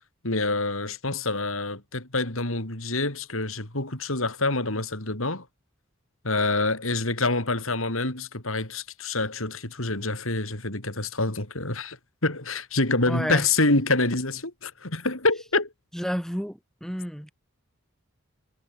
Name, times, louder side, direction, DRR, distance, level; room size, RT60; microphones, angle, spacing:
voice 1, 0.2-5.4 6.2-15.7, left 2 dB, 75° left, 5.0 m, -26 dB
voice 2, 13.1-13.4 15.9-17.3, equal, ahead, 6.1 m, -31 dB
head